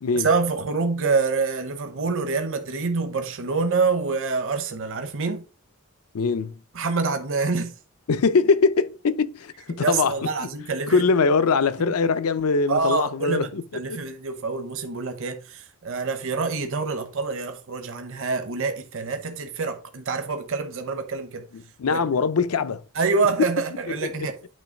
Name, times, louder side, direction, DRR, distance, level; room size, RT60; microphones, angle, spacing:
voice 1, 0.1-5.4 6.7-7.7 9.7-11.0 11.8-11.9 12.7-21.4 21.9-22.0 22.9-24.4, right 4 dB, 60° right, 0.8 m, -26 dB
voice 2, 6.1-6.5 8.1-10.5 10.9-13.6 13.9-14.0 21.5-22.8 23.4-23.5 24.2-24.3, left 4 dB, 75° left, 0.5 m, -22 dB
8.9 x 3.1 x 5.1 m
head